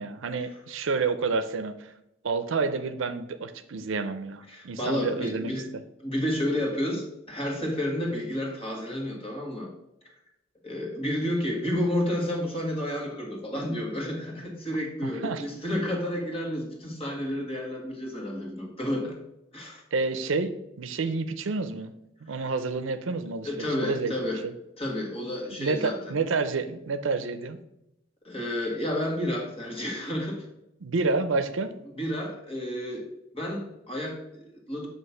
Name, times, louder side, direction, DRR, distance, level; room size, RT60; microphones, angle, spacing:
voice 1, 0.0-1.9 2.2-5.5 15.0-15.4 19.9-21.9 22.2-24.1 24.4-24.5 25.6-27.6 30.8-31.7, right 4 dB, 75° right, 10 dB, 0.5 m, -29 dB
voice 2, 4.5-5.7 6.0-9.7 10.6-19.2 19.5-19.8 22.3-22.5 23.4-24.4 24.8-26.1 28.2-30.4 32.0-33.1 33.3-34.9, left 1 dB, 30° left, -1 dB, 1.6 m, -31 dB
7.7 x 2.9 x 5.6 m, 0.83 s
head